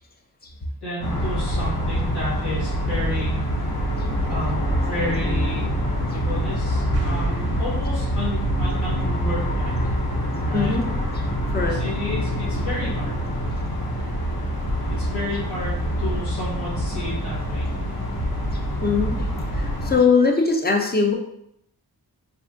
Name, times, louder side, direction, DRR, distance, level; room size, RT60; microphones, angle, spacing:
voice 1, 0.8-3.3 4.2-5.7 6.1-9.8 10.5-10.8 11.7-13.2 15.0-17.7, left 1 dB, 80° left, -9 dB, 1.4 m, -31 dB
sound 1, 1.0-20.0, equal, 65° left, 0.7 m, -25 dB
sound 2, 6.9-8.5, right 3 dB, 40° right, 0.4 m, -34 dB
voice 2, 10.5-10.8 11.5-11.8 18.8-19.1 19.6-21.1, left 5 dB, 25° left, 2 dB, 0.4 m, -20 dB
3.4 x 2.1 x 2.5 m, 0.76 s
wide cardioid pair, 110°, 40 cm